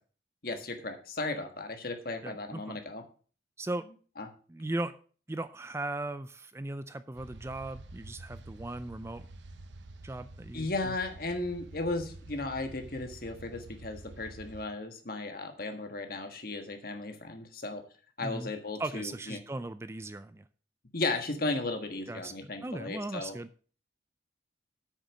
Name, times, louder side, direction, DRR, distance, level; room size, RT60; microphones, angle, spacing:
voice 1, 0.4-3.0 4.2-4.3 10.5-17.8 18.2-19.4 20.9-23.3, left 2 dB, 50° left, 5 dB, 1.5 m, -35 dB
voice 2, 2.2-2.8 3.6-3.9 4.5-5.0 5.3-9.3 10.0-10.9 18.2-18.5 18.8-20.5 22.1-23.5, right 2 dB, 15° right, 12 dB, 0.3 m, -38 dB
sound 1, 7.1-14.7, right 2 dB, 80° right, 1.0 m, -48 dB
8.2 x 6.7 x 6.1 m, 0.40 s
head